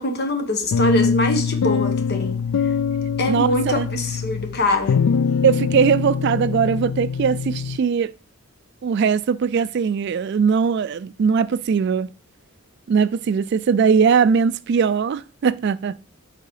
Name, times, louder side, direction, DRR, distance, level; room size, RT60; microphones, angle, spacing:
voice 1, 0.0-2.7 3.2-5.0, left 1 dB, 50° left, 1.1 m, -24 dB
sound 1, 0.7-7.8, left 6 dB, 75° left, 0.3 m, -23 dB
voice 2, 3.3-3.9 5.4-8.1 8.8-12.1 12.9-16.0, right 6 dB, 50° right, 0.3 m, -20 dB
6.8 x 3.8 x 4.7 m
head